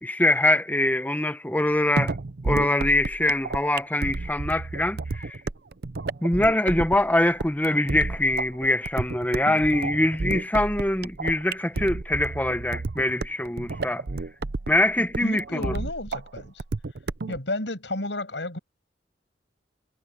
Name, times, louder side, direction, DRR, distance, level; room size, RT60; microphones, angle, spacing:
voice 1, 0.0-2.1 2.4-5.4 6.2-14.0 14.7-15.7, left 1 dB, 10° left, 1.1 m, -23 dB
sound 1, 2.0-17.4, right 3 dB, 65° right, 0.7 m, -31 dB
voice 2, 15.0-16.6 17.3-18.6, left 2 dB, 90° left, 6.6 m, -32 dB
head